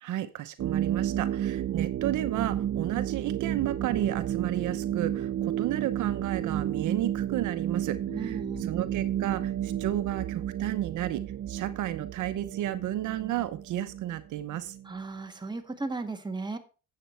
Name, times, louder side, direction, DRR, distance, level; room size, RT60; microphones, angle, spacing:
voice 1, 0.0-8.4 8.7-14.8, right 13 dB, 80° right, 11 dB, 0.9 m, -32 dB
sound 1, 0.6-15.0, right 11 dB, 50° right, 0.5 m, -32 dB
voice 2, 8.1-8.7 14.8-16.6, right 3 dB, 15° right, 5 dB, 1.7 m, -35 dB
9.2 x 7.6 x 4.4 m, 0.34 s
cardioid pair, 90°, 30 cm